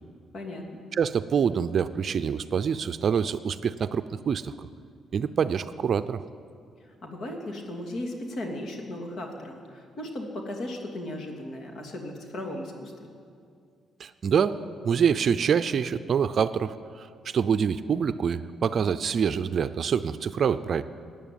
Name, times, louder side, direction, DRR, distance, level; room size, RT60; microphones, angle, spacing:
voice 1, 0.3-0.8 7.0-13.1, left 1 dB, 55° left, 2 dB, 2.7 m, -36 dB
voice 2, 0.9-4.7 5.1-6.2 14.0-14.6 14.8-20.8, right 7 dB, 55° right, 12 dB, 0.5 m, -26 dB
16.0 x 9.0 x 9.3 m, 2.3 s
cardioid pair, 90°, 0 cm